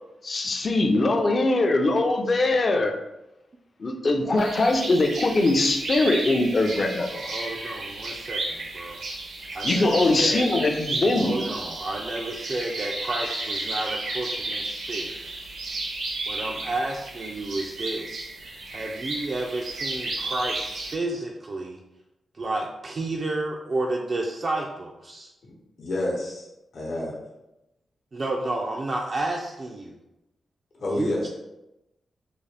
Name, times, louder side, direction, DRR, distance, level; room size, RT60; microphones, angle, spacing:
voice 1, 0.2-2.9 3.8-7.1 9.6-11.4, left 2 dB, 45° left, 4 dB, 0.5 m, -22 dB
sound 1, 4.4-20.9, right 2 dB, 85° right, 0.8 m, -33 dB
voice 2, 7.1-9.0 9.5-10.5 11.2-15.2 16.3-18.3 18.7-21.8 22.3-25.3 28.1-30.0 30.9-31.3, right 2 dB, 45° right, -1 dB, 0.3 m, -31 dB
voice 3, 25.4-26.4 26.7-27.1 30.8-31.3, left 1 dB, 70° left, -4 dB, 0.9 m, -29 dB
3.8 x 2.4 x 3.3 m, 0.93 s
wide cardioid pair, 100°, 0 cm